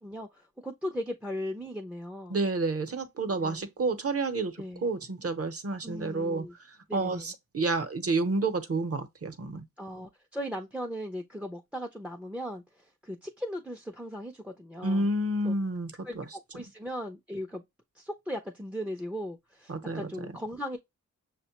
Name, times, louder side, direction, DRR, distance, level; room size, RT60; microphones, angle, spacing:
voice 1, 0.0-2.4 3.4-3.7 4.6-4.9 5.8-6.6 6.9-7.3 9.8-15.1 15.4-15.5 16.0-17.6 17.9-20.8, equal, 5° right, 0.4 m, -38 dB
voice 2, 2.3-9.6 14.8-16.3 16.5-16.6 19.7-20.1, right 2 dB, 50° right, 0.7 m, -30 dB
6.3 x 2.1 x 2.8 m
wide cardioid pair, 130°, 31 cm